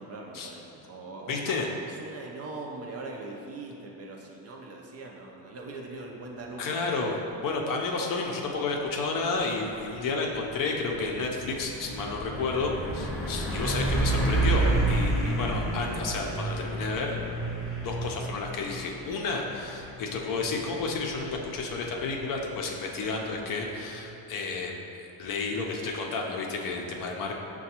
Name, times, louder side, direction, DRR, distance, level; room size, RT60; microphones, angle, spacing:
voice 1, 0.0-1.4 1.9-6.7, right 2 dB, 35° right, 0 dB, 0.5 m, -41 dB
voice 2, 1.3-1.7 6.6-17.2 17.8-24.7 25.2-27.3, left 3 dB, 50° left, 0 dB, 0.6 m, -31 dB
Truck, 9.8-24.1, right 2 dB, ahead, 0.8 m, -31 dB
5.6 x 2.3 x 2.8 m, 2.8 s
cardioid pair, 100°, 43 cm